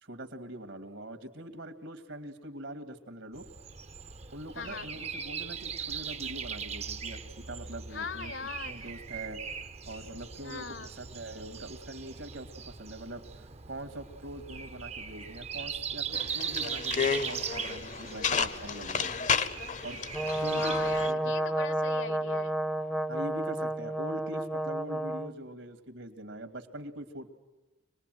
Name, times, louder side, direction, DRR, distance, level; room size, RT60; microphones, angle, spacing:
voice 1, 0.0-3.4 4.3-8.3 8.7-9.4 9.9-10.7 11.0-13.2 13.7-19.1 19.8-20.0 20.4-21.5 23.1-27.3, right 1 dB, 70° right, 8 dB, 2.3 m, -43 dB
Breathing, 3.3-21.1, right 6 dB, 30° right, 0.7 m, -40 dB
voice 2, 4.5-4.9 7.9-8.9 10.4-10.9 20.4-22.5, left 5 dB, 70° left, 14 dB, 1.3 m, -40 dB
sound 1, 16.1-21.1, left 6 dB, 40° left, 0.8 m, -32 dB
Brass instrument, 20.1-25.3, right 1 dB, ahead, 0.7 m, -31 dB
25.0 x 20.0 x 9.3 m, 1.1 s
head